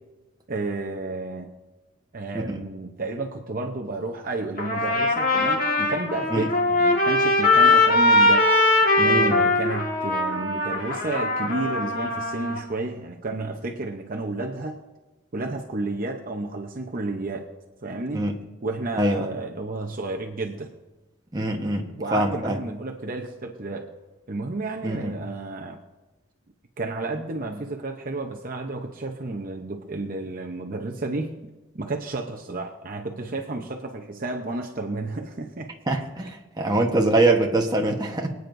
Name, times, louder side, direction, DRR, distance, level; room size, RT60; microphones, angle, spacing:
voice 1, 0.5-1.5 2.1-8.5 9.0-14.8 15.3-17.5 17.8-18.3 18.6-20.7 22.0-23.9 24.3-25.8 26.8-31.4 31.7-35.7, right 2 dB, 40° right, 2 dB, 0.8 m, -31 dB
Trumpet, 4.6-12.6, left 2 dB, 40° left, 1.6 m, -21 dB
voice 2, 9.0-9.4 18.1-18.4 19.0-19.3 21.3-22.6 24.8-25.1 35.9-38.3, right 2 dB, 20° right, 1 dB, 1.1 m, -24 dB
24.5 x 9.3 x 2.6 m, 1.1 s
head